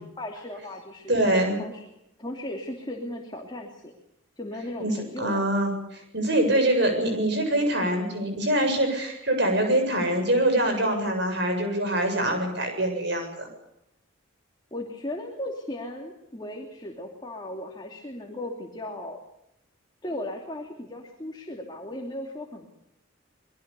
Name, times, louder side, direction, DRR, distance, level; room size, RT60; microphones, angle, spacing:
voice 1, 0.0-1.1 1.6-1.8 2.2-3.9 4.4-5.4 14.7-19.2 20.0-22.7, left 1 dB, 20° left, 1 dB, 2.9 m, -36 dB
voice 2, 1.1-1.6 4.8-13.5, right 1 dB, 55° right, 4 dB, 7.7 m, -24 dB
25.5 x 22.0 x 7.0 m, 0.83 s
head